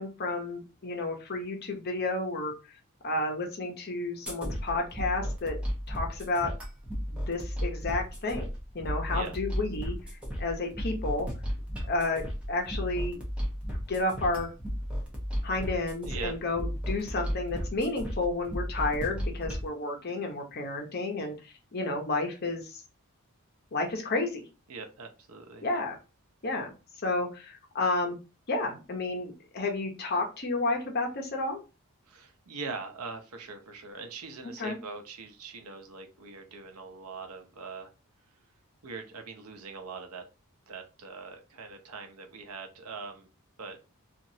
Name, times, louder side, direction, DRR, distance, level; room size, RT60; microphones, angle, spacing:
voice 1, 0.0-2.5 3.0-5.6 5.9-6.5 7.1-8.5 8.7-11.3 11.9-13.2 13.9-14.5 15.4-22.8 23.7-24.4 25.6-26.0 26.4-26.7 27.0-28.2 28.5-31.6 34.6-34.8, left 2 dB, 45° left, 2 dB, 0.8 m, -31 dB
sound 1, 4.3-19.7, equal, 5° right, 0.9 m, -34 dB
voice 2, 16.0-16.3 24.7-25.7 32.1-37.9 38.8-40.2 40.7-43.3 43.6-43.8, right 4 dB, 85° right, 5 dB, 0.7 m, -42 dB
2.9 x 2.5 x 2.7 m, 0.30 s
head